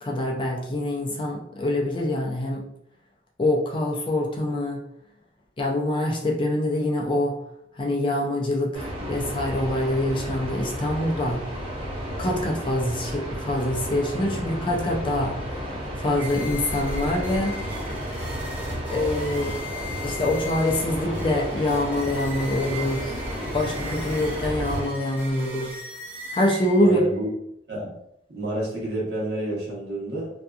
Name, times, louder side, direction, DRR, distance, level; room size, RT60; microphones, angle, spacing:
voice 1, 0.0-2.6 3.4-4.8 5.6-7.3 7.8-11.4 12.2-15.4 16.0-17.7 18.9-19.5 20.0-23.2 23.5-25.7 26.3-27.0, left 1 dB, 30° left, -2 dB, 0.4 m, -25 dB
sound 1, 8.7-24.9, equal, 30° right, 1.3 m, -32 dB
sound 2, 16.1-27.1, left 1 dB, 10° right, 0.6 m, -38 dB
voice 2, 26.8-27.3 27.7-27.9 28.3-30.3, right 1 dB, 65° right, -5 dB, 1.0 m, -29 dB
2.6 x 2.4 x 2.3 m, 0.77 s
head